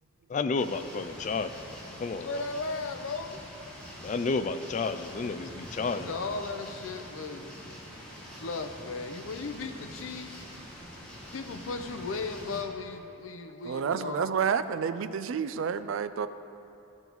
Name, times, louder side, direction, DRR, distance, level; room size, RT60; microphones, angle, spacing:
voice 1, 0.3-1.6 2.0-2.4 4.0-6.2, left 4 dB, 40° left, 11 dB, 0.3 m, -31 dB
sound 1, 0.6-12.6, equal, 5° left, 1.6 m, -45 dB
voice 2, 2.2-3.5 5.8-7.7 8.3-10.5 11.3-14.5, left 4 dB, 80° left, 7 dB, 0.6 m, -36 dB
voice 3, 13.7-16.3, right 7 dB, 70° right, 13 dB, 0.3 m, -29 dB
15.0 x 5.3 x 3.0 m, 2.8 s
head